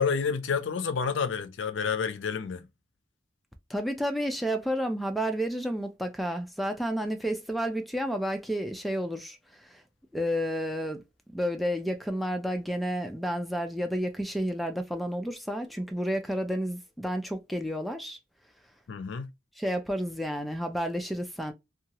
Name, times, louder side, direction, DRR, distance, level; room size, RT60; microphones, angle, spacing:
voice 1, 0.0-2.7 18.9-19.3, left 6 dB, 80° left, 0.4 m, -29 dB
voice 2, 3.7-9.8 10.1-11.0 11.3-18.2 19.6-21.5, equal, ahead, 0.4 m, -31 dB
2.7 x 2.3 x 2.8 m
head